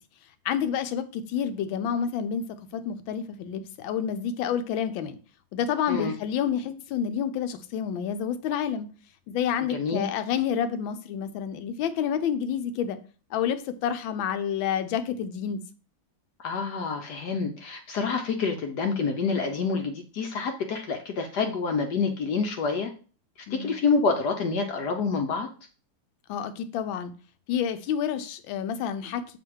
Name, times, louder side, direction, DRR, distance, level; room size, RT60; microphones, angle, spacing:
voice 1, 0.4-2.4 2.7-5.2 5.5-8.9 9.3-13.0 13.3-15.6 23.5-23.8 26.3-27.1 27.5-29.4, left 8 dB, 85° left, 10 dB, 1.4 m, -29 dB
voice 2, 9.7-10.0 16.4-22.9 23.5-25.5, left 4 dB, 70° left, 4 dB, 1.2 m, -27 dB
7.1 x 3.1 x 4.6 m, 0.38 s
omnidirectional pair, 2.1 m